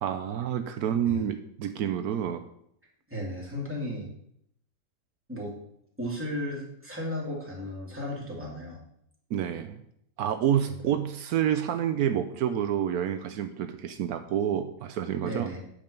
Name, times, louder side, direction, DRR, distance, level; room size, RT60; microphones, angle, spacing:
voice 1, 0.0-2.4 9.3-9.8 10.2-15.5, right 9 dB, 80° right, 7 dB, 1.1 m, -28 dB
voice 2, 3.1-4.1 5.3-5.5 6.0-8.8 15.2-15.6, left 1 dB, 10° right, -4 dB, 2.7 m, -35 dB
8.8 x 6.7 x 5.3 m, 0.72 s
omnidirectional pair, 1.6 m